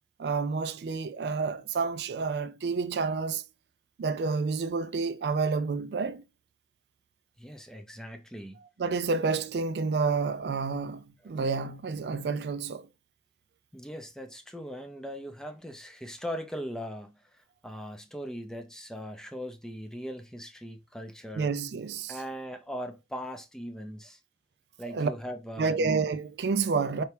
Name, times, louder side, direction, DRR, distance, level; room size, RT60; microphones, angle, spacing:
voice 1, 0.2-3.4 4.0-6.2 8.8-12.9 21.4-22.1 24.9-25.1 25.6-27.0, right 4 dB, 65° right, 0.4 m, -29 dB
voice 2, 7.4-8.6 11.2-11.3 13.7-21.6 22.1-24.2 24.8-25.9, equal, 5° left, 0.5 m, -40 dB
4.5 x 2.8 x 3.2 m
head